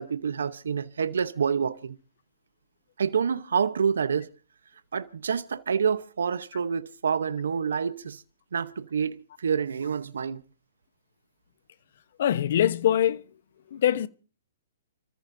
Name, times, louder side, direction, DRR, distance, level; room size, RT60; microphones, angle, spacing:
voice 1, 0.0-2.0 3.0-4.3 4.9-8.2 8.5-10.4, right 6 dB, 80° right, 0.9 m, -27 dB
voice 2, 12.2-13.2 13.7-14.1, left 11 dB, 60° left, 1.0 m, -23 dB
30.0 x 14.0 x 2.7 m
hypercardioid pair, 140°, 0 cm